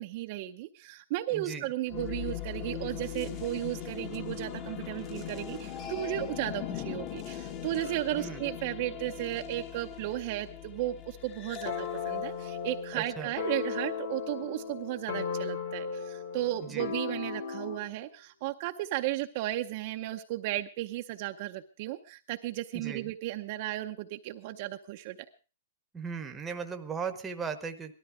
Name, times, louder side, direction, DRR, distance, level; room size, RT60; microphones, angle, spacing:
voice 1, 0.0-25.2, right 15 dB, 35° right, 5 dB, 0.7 m, -34 dB
voice 2, 1.3-1.6 8.2-8.4 12.9-13.3 16.7-16.9 22.7-23.1 25.9-27.9, right 6 dB, 10° right, 5 dB, 1.0 m, -37 dB
sound 1, 1.9-13.7, left 9 dB, 25° left, 1.1 m, -40 dB
sound 2, 11.6-17.9, left 6 dB, 45° left, 1.5 m, -36 dB
18.0 x 13.0 x 4.8 m, 0.35 s
hypercardioid pair, 175°, 0 cm